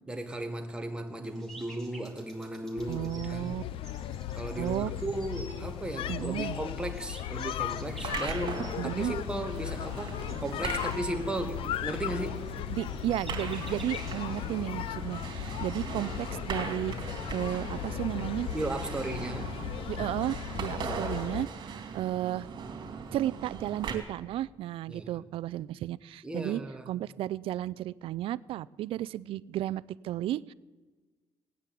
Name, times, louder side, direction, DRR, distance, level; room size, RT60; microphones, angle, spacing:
voice 1, 0.1-3.6 4.3-12.4 18.5-19.6 24.9-25.2 26.2-26.9, right 2 dB, 10° right, 1.5 m, -36 dB
sound 1, 1.2-16.4, right 1 dB, 5° left, 3.2 m, -53 dB
sound 2, 2.8-21.5, left 12 dB, 70° left, 0.5 m, -37 dB
voice 2, 2.9-3.6 4.6-4.9 6.1-6.6 8.8-9.1 12.7-18.5 19.9-22.5 23.1-26.6 26.9-30.5, right 13 dB, 75° right, 0.4 m, -33 dB
sound 3, 7.7-24.0, right 5 dB, 55° right, 3.2 m, -40 dB
18.0 x 9.6 x 8.4 m
cardioid pair, 130°, 9 cm